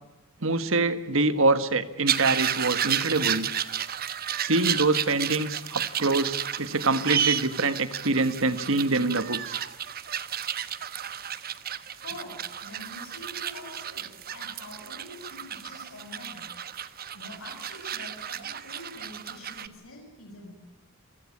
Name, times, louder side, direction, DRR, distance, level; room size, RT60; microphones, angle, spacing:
voice 1, 0.4-3.5 4.4-9.6, right 3 dB, 60° right, 12 dB, 1.6 m, -25 dB
sound 1, 2.1-19.7, right 9 dB, 45° right, 1.0 m, -32 dB
voice 2, 11.9-20.6, left 1 dB, 65° left, 1 dB, 7.0 m, -46 dB
28.0 x 16.0 x 9.7 m, 1.1 s
head